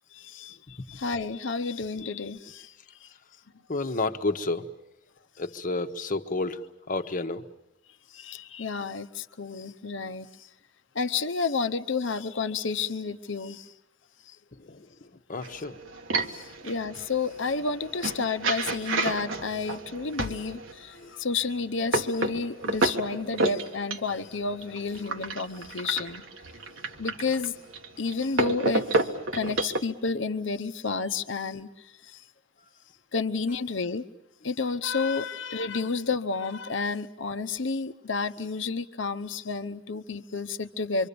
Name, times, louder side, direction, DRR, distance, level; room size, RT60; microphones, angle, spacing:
voice 1, 0.1-3.1 8.1-10.5 10.9-13.7 14.2-14.4 16.3-26.2 27.0-27.6 28.0-32.2 33.1-34.0 34.4-41.1, left 4 dB, 70° left, 9 dB, 0.9 m, -31 dB
voice 2, 0.7-1.0 3.7-4.7 5.4-7.5 14.5-15.8 16.5-16.6 20.9-21.1, left 3 dB, 45° left, 8 dB, 1.1 m, -31 dB
sound 1, 15.4-20.7 21.3-29.8, right 2 dB, 80° right, 1.7 m, -31 dB
26.0 x 25.0 x 6.9 m, 0.93 s
head